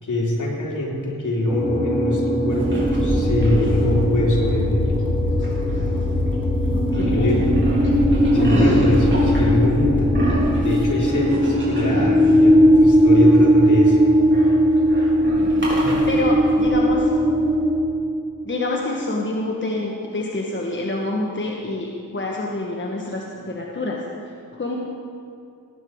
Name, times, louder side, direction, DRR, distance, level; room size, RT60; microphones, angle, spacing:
voice 1, 0.0-4.9 6.9-7.6 8.3-10.2 10.6-14.0, left 1 dB, 65° left, -4 dB, 3.5 m, -23 dB
sound 1, 1.5-17.8, equal, 15° right, 3.1 m, -19 dB
sound 2, 2.5-3.9 5.4-6.3 6.6-16.7, right 1 dB, 35° right, 4.3 m, -28 dB
sound 3, 2.9-10.2, left 2 dB, 5° left, 2.7 m, -24 dB
voice 2, 6.7-7.5 15.9-17.1 18.4-24.0 24.5-24.8, left 2 dB, 35° left, -2 dB, 1.5 m, -27 dB
19.5 x 9.1 x 4.8 m, 2.4 s
wide cardioid pair, 75°, 33 cm